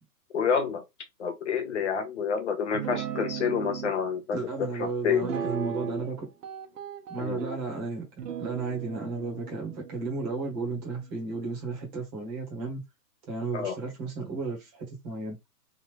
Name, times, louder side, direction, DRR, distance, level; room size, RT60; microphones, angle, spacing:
voice 1, 0.3-0.8 1.2-5.2 7.2-7.4 13.5-13.7, left 6 dB, 45° left, 0.8 m, -28 dB
Guitar, 2.7-3.9 5.2-6.1 6.4-7.6 8.2-11.7, right 7 dB, 80° right, 1.2 m, -37 dB
voice 2, 4.3-6.3 7.1-8.1 8.4-12.8 13.3-15.4, right 4 dB, 15° right, 1.0 m, -33 dB
3.5 x 2.4 x 3.1 m
hypercardioid pair, 170°, 48 cm